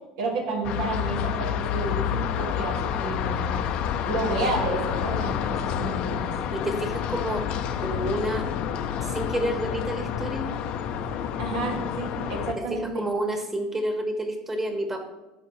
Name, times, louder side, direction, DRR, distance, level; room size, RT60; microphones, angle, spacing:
voice 1, 0.2-3.6 4.1-6.3 11.4-13.0, right 3 dB, 80° right, -1 dB, 2.0 m, -31 dB
sound 1, 0.6-12.5, left 9 dB, 60° left, 0.6 m, -29 dB
voice 2, 6.5-7.5 7.8-8.5 9.0-10.5 12.6-15.0, right 1 dB, 20° right, 4 dB, 1.5 m, -29 dB
11.5 x 4.6 x 3.2 m, 1.0 s
supercardioid pair, 95°, 2 cm